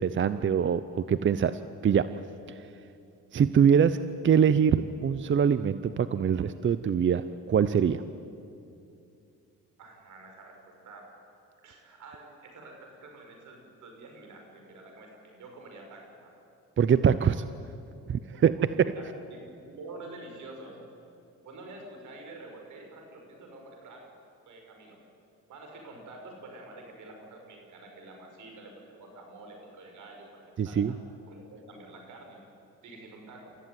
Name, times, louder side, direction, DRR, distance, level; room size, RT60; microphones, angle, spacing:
voice 1, 0.0-2.1 2.5-2.7 3.3-4.0 4.2-8.0 16.8-17.5 18.1-18.5 30.6-30.9, right 7 dB, 40° right, 13 dB, 0.7 m, -24 dB
voice 2, 9.8-11.1 11.6-16.4 18.3-20.9 21.4-24.1 24.5-25.0 25.5-31.0 31.3-32.4 32.8-33.6, right 2 dB, 75° right, 2 dB, 6.1 m, -48 dB
28.5 x 15.0 x 9.5 m, 2.6 s
cardioid pair, 90°, 30 cm